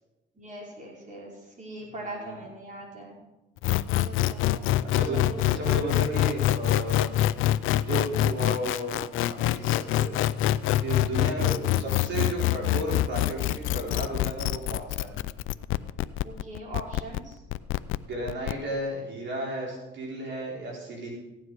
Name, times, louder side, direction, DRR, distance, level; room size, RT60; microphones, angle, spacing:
voice 1, 0.4-1.3 1.6-3.2 4.0-5.6 7.1-7.3 11.2-11.5 16.2-17.3, right 1 dB, 40° right, -3 dB, 5.2 m, -41 dB
voice 2, 1.9-2.4 4.9-7.1 7.8-10.1 10.8-15.1 18.0-21.1, right 1 dB, 65° right, -3 dB, 4.3 m, -34 dB
sound 1, 3.6-18.5, left 14 dB, 85° left, 0.4 m, -25 dB
16.0 x 9.6 x 4.8 m, 1.0 s
cardioid pair, 90°, 20 cm